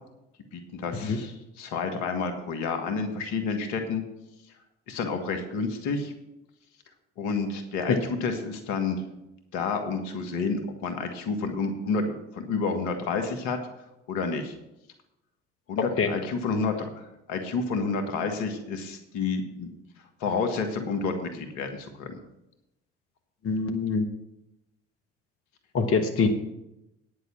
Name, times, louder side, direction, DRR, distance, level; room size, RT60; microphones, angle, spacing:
voice 1, 0.5-4.0 4.9-6.1 7.2-9.0 9.5-13.6 14.1-14.5 15.7-19.7 20.2-22.2, left 4 dB, 70° left, 6 dB, 1.6 m, -30 dB
voice 2, 23.4-24.1 25.7-26.3, left 4 dB, 50° left, 5 dB, 1.4 m, -24 dB
9.5 x 7.1 x 7.2 m, 0.89 s
hypercardioid pair, 55°, 30 cm